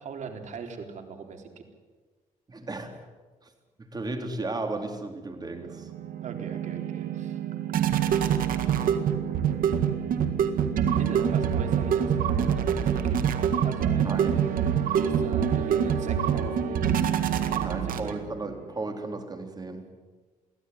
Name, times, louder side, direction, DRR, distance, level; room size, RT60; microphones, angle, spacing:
voice 1, 0.0-1.6 6.2-8.4 11.0-12.1 12.5-13.2 13.6-14.2 15.0-17.0 17.5-18.2, right 5 dB, 55° right, 5 dB, 3.9 m, -40 dB
voice 2, 2.5-3.1 3.4-3.5 3.8-5.9 14.0-14.4 17.6-19.9, right 2 dB, 30° right, 5 dB, 3.8 m, -35 dB
sound 1, 5.6-18.4, right 8 dB, 75° right, 1.9 m, -25 dB
23.5 x 16.0 x 9.6 m, 1.3 s
cardioid pair, 105°, 14 cm